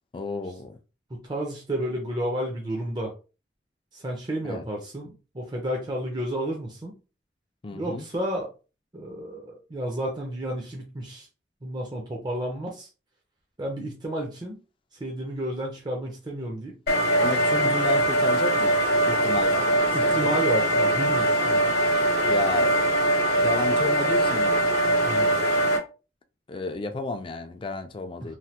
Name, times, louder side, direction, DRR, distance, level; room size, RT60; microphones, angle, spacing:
voice 1, 0.1-0.8 4.5-4.6 7.6-8.1 17.2-18.8 19.0-20.4 22.2-22.8 23.4-24.5 26.5-28.4, left 3 dB, 30° left, 0.4 m, -32 dB
voice 2, 1.1-3.1 3.9-6.9 7.7-8.5 8.9-11.3 11.6-12.9 13.6-14.6 14.9-16.8 19.9-21.6 25.0-25.4 28.2-28.3, right 1 dB, 25° right, 0.5 m, -31 dB
sound 1, 16.9-25.8, right 1 dB, 60° left, 0.9 m, -22 dB
3.2 x 2.1 x 2.8 m
head